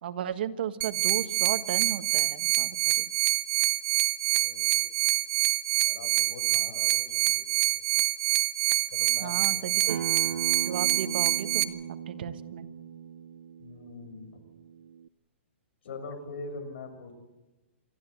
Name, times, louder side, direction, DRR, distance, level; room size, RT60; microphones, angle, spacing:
voice 1, 0.0-3.1 9.2-10.0 10.6-12.7, right 9 dB, 50° right, 10 dB, 1.5 m, -35 dB
sound 1, 0.8-11.6, right 19 dB, 25° right, 0.6 m, -26 dB
voice 2, 4.4-4.9 5.8-7.7 8.9-10.4 13.6-14.4 15.8-17.1, left 3 dB, 60° left, 7 dB, 6.4 m, -43 dB
Acoustic guitar, 9.9-15.1, right 8 dB, 90° right, 0.7 m, -38 dB
29.5 x 13.5 x 8.4 m, 1.1 s
hypercardioid pair, 170°, 7 cm